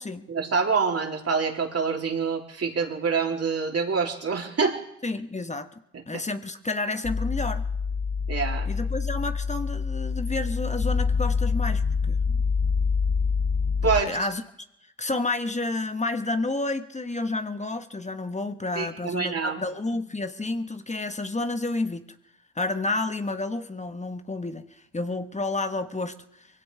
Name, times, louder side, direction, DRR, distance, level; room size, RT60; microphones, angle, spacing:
voice 1, 0.3-4.8 5.9-6.2 8.3-8.7 13.8-14.1 18.7-19.6, right 5 dB, 40° right, 1 dB, 3.4 m, -26 dB
voice 2, 5.0-5.7 6.1-7.6 8.6-12.4 14.0-14.4 15.0-22.0 22.5-26.5, left 2 dB, 20° left, 8 dB, 1.4 m, -30 dB
sound 1, 7.0-14.0, left 5 dB, 45° left, 2.4 m, -26 dB
23.5 x 16.5 x 3.5 m, 0.83 s
hypercardioid pair, 50°, 36 cm